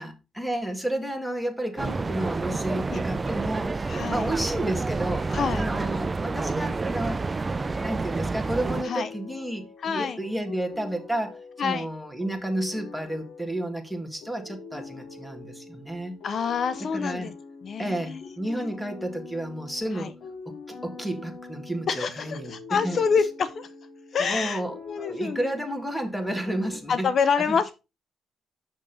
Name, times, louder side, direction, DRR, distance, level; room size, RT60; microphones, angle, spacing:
voice 1, 0.0-7.2 7.8-16.2 16.9-17.3 17.8-20.1 20.4-23.0 24.2-27.1 27.5-27.7, right 1 dB, ahead, 1.7 m, -31 dB
sound 1, 1.8-8.8, right 3 dB, 25° right, 0.4 m, -29 dB
voice 2, 3.9-4.3 5.3-5.6 8.8-9.1 9.8-10.2 11.6-11.9 16.2-17.3 17.6-18.7 19.9-20.1 21.9-23.7 24.1-24.6 24.9-25.5 26.9-27.7, left 6 dB, 55° left, 0.6 m, -27 dB
sound 2, 8.6-26.8, left 4 dB, 75° left, 2.4 m, -44 dB
6.4 x 6.1 x 3.9 m
cardioid pair, 90°, 0 cm